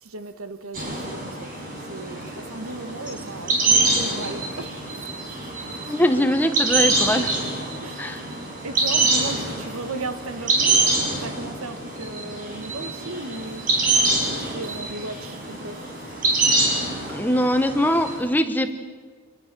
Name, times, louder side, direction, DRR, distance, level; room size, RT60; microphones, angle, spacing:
voice 1, 0.0-1.5 1.9-4.7 7.8-8.1 8.6-10.9 11.2-13.6 14.3-15.8, right 2 dB, 90° right, 1.5 m, -35 dB
sound 1, 0.7-18.2, right 3 dB, 40° right, 5.9 m, -25 dB
voice 2, 5.9-7.3 8.0-8.2 17.1-18.7, equal, 10° left, 1.1 m, -22 dB
27.0 x 19.5 x 6.9 m
head